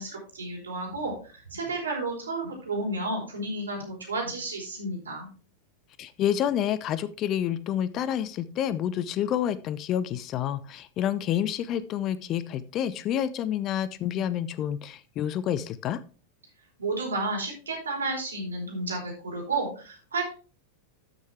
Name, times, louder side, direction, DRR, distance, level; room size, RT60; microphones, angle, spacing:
voice 1, 0.0-5.3 16.8-20.3, right 2 dB, 75° right, 0 dB, 4.2 m, -32 dB
voice 2, 6.0-16.0, left 10 dB, 35° left, 17 dB, 0.6 m, -28 dB
13.0 x 6.4 x 3.3 m, 0.35 s
figure-of-eight pair, 90°, 0 cm